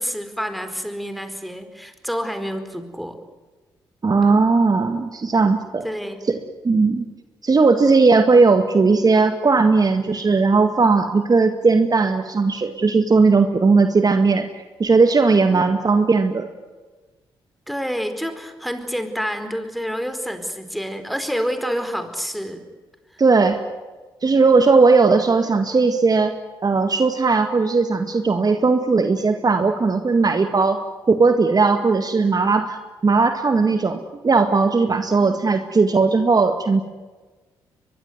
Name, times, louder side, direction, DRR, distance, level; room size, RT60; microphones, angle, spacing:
voice 1, 0.0-3.2 5.8-6.2 15.5-15.7 17.7-22.7 35.1-35.4, equal, ahead, 8 dB, 4.5 m, -28 dB
voice 2, 4.0-5.8 6.3-6.4 6.6-7.1 7.4-14.5 14.8-16.5 23.2-23.6 24.2-26.3 26.6-30.8 31.1-32.8 33.0-36.8, right 4 dB, 40° right, 7 dB, 1.9 m, -17 dB
23.0 x 22.0 x 9.6 m, 1.3 s
hypercardioid pair, 45°, 10 cm